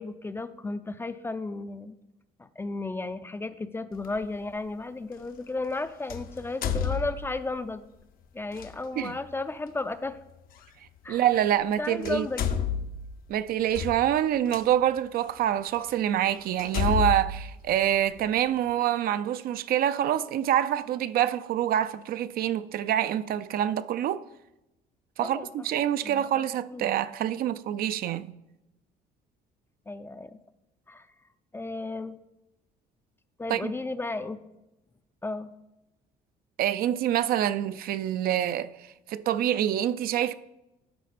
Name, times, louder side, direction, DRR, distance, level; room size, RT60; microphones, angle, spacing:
voice 1, 0.0-2.0 2.4-7.8 8.3-10.2 11.0-11.2 11.8-12.5 25.2-25.7 26.0-26.9 29.9-30.4 30.9-31.1 31.5-32.2 33.4-34.4 35.2-35.5, left 2 dB, 15° left, 0.4 m, -34 dB
sound 1, 4.0-4.2 6.1-7.6 8.5-8.7 10.6-10.7 11.6-11.7 12.0-14.6 15.3-15.4 15.9-16.0 16.6-18.4, left 7 dB, 60° left, 0.7 m, -31 dB
voice 2, 11.1-12.3 13.3-24.2 25.2-28.3 33.5-33.7 36.6-38.7 39.1-40.3, right 11 dB, 60° right, 0.4 m, -26 dB
12.5 x 4.2 x 4.2 m
cardioid pair, 110°, 17 cm